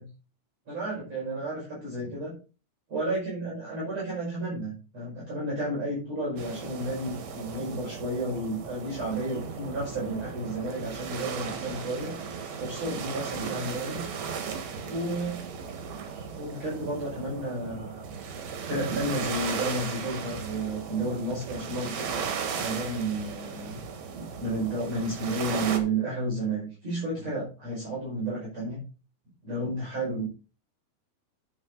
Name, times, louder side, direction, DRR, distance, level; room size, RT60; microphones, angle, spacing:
voice 1, 0.7-2.3 2.9-12.1 12.6-14.0 14.8-15.4 16.3-18.1 18.7-23.8 24.2-28.8 29.4-30.2, right 2 dB, 45° right, -6 dB, 6.5 m, -32 dB
sound 1, 6.4-25.8, right 6 dB, 85° right, 3.7 m, -36 dB
11.0 x 7.4 x 3.9 m, 0.34 s
omnidirectional pair, 4.2 m